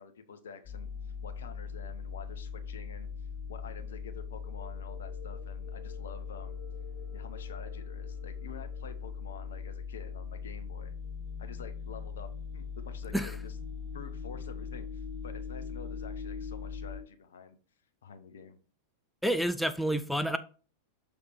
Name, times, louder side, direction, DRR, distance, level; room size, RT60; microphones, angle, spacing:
voice 1, 0.0-3.1 3.5-6.6 7.1-10.9 11.4-13.6 13.9-17.6 18.0-18.6, left 6 dB, 65° left, 0.8 m, -48 dB
sound 1, 0.6-17.0, left 6 dB, 30° left, 1.8 m, -40 dB
voice 2, 19.2-20.4, equal, ahead, 0.4 m, -29 dB
6.5 x 3.5 x 4.4 m
figure-of-eight pair, 90°, 0 cm